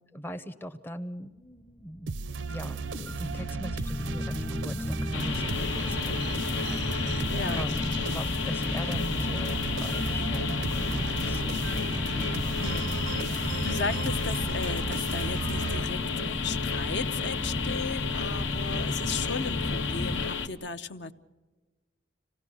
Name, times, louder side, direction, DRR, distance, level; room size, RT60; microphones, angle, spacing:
voice 1, 0.1-2.2 2.5-11.9, equal, 10° left, 7 dB, 0.6 m, -41 dB
sound 1, 2.1-20.3, left 1 dB, 40° left, 1.5 m, -34 dB
sound 2, 2.1-16.3, right 4 dB, 75° right, 0.6 m, -36 dB
sound 3, 5.1-20.5, left 6 dB, 80° left, 1.1 m, -32 dB
voice 2, 7.3-7.6 12.6-13.0 13.3-16.0 16.3-21.1, left 4 dB, 65° left, 10 dB, 0.8 m, -36 dB
26.5 x 17.5 x 6.8 m, 1.3 s
head